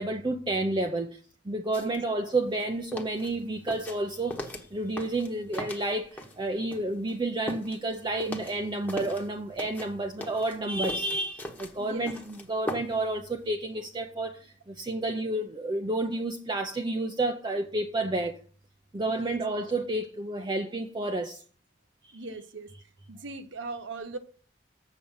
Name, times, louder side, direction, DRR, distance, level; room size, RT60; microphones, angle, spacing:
voice 1, 0.0-18.4 18.9-21.4, right 2 dB, 25° right, 0.6 m, -30 dB
sound 1, 1.7-2.0 2.4-6.4 6.7-9.3 9.6-13.1 13.4-13.5, left 1 dB, 10° left, 1.1 m, -39 dB
voice 2, 11.7-12.1 19.1-19.4 22.1-22.7 23.1-24.2, right 3 dB, 85° right, 1.0 m, -39 dB
7.4 x 7.0 x 5.5 m
head